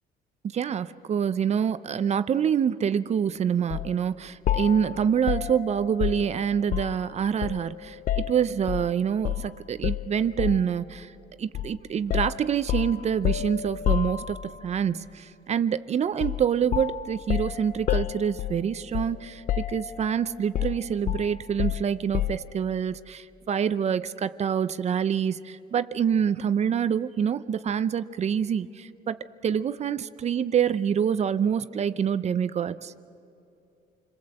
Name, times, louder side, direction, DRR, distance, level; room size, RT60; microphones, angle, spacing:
voice 1, 0.5-11.1 11.4-32.9, right 8 dB, 40° right, 14 dB, 0.7 m, -26 dB
sound 1, 3.7-3.9 4.5-7.1 7.4-8.9 9.2-9.5 9.8-10.7 11.5-11.7 12.1-14.7 16.2-16.5 16.7-19.2 19.5-20.1 20.5-22.5, left 12 dB, 50° left, 0.7 m, -29 dB
28.5 x 22.0 x 7.9 m, 2.9 s
cardioid pair, 110°, 17 cm